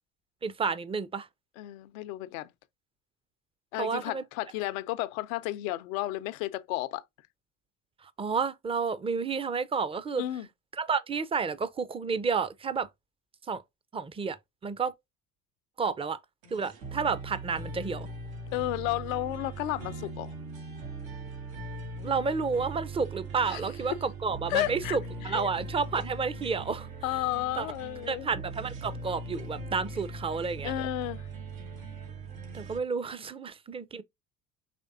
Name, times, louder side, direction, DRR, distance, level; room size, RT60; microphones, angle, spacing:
voice 1, 0.4-1.3 3.8-4.2 8.2-10.2 10.8-12.9 13.5-13.6 13.9-14.4 14.6-14.9 15.8-16.2 16.5-18.1 22.0-26.9 27.6-27.7 28.1-30.7 32.5-34.0, right 5 dB, 15° right, 0.5 m, -30 dB
voice 2, 1.6-2.5 3.7-7.0 10.2-10.5 18.5-20.3 23.5-23.6 24.5-25.0 25.2-25.5 27.0-28.3 30.6-31.3, left 16 dB, 80° left, 0.7 m, -32 dB
sound 1, 16.4-32.8, right 3 dB, 85° right, 1.8 m, -40 dB
5.1 x 3.2 x 2.6 m
hypercardioid pair, 75°, 40 cm